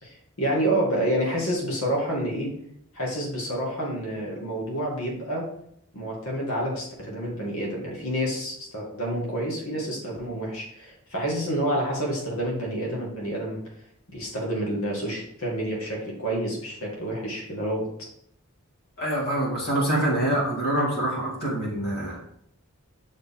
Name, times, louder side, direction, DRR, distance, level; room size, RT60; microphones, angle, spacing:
voice 1, 0.0-2.5 2.9-5.5 5.9-13.6 14.1-17.9, right 1 dB, 80° left, -3 dB, 2.0 m, -28 dB
voice 2, 19.0-22.2, right 1 dB, 50° left, -3 dB, 2.1 m, -25 dB
6.4 x 4.6 x 3.7 m, 0.70 s
head